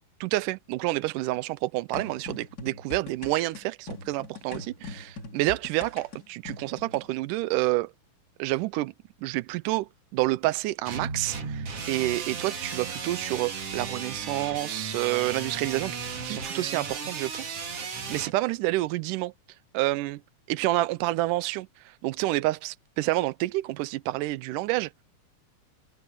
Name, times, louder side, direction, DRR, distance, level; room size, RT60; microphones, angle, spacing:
voice 1, 0.2-7.9 8.4-8.9 9.2-19.3 19.7-20.2 20.5-24.9, right 18 dB, 85° right, 2.2 m, -29 dB
sound 1, 1.9-7.1, left 3 dB, 30° left, 3.1 m, -42 dB
sound 2, 10.9-18.3, right 5 dB, 50° right, 3.4 m, -35 dB
omnidirectional pair, 3.7 m